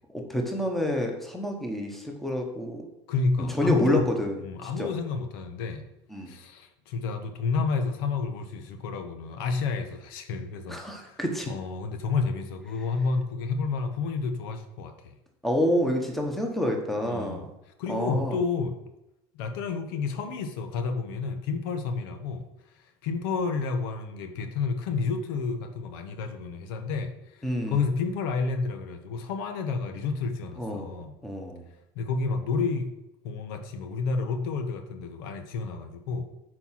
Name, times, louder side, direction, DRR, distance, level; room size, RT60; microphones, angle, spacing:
voice 1, 0.1-2.8 3.5-4.3 4.6-4.9 6.1-6.3 10.7-11.5 15.4-17.5 17.9-18.4 27.4-27.8 30.6-30.9 31.2-31.7, equal, ahead, 2 dB, 1.0 m, -28 dB
voice 2, 3.1-4.1 4.4-5.8 6.3-11.2 11.5-15.1 17.1-17.5 17.8-18.8 19.3-22.5 23.0-31.1 31.9-32.9 33.2-36.2, left 4 dB, 85° left, 7 dB, 1.2 m, -30 dB
9.2 x 4.5 x 5.8 m, 0.88 s
cardioid pair, 170°, 12 cm